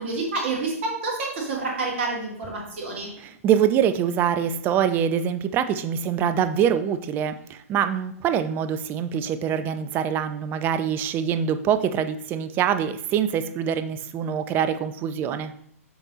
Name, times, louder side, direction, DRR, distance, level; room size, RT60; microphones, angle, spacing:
voice 1, 0.0-3.1, right 3 dB, 50° right, -1 dB, 2.3 m, -28 dB
voice 2, 3.2-15.5, right 8 dB, 25° right, 11 dB, 0.4 m, -24 dB
6.9 x 3.4 x 4.1 m, 0.67 s
figure-of-eight pair, 115°, 8 cm